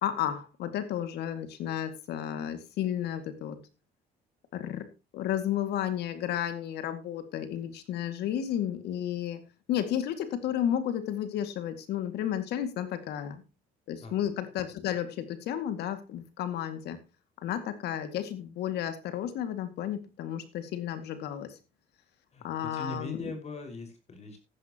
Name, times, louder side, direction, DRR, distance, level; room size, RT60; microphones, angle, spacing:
voice 1, 0.0-3.6 4.5-4.9 5.1-9.4 9.7-13.4 13.9-17.0 17.4-21.6 22.4-23.2, left 10 dB, 75° left, 9 dB, 2.3 m, -32 dB
voice 2, 22.3-24.4, left 3 dB, 40° left, 5 dB, 5.5 m, -40 dB
14.5 x 12.0 x 3.0 m, 0.29 s
cardioid pair, 110°, 17 cm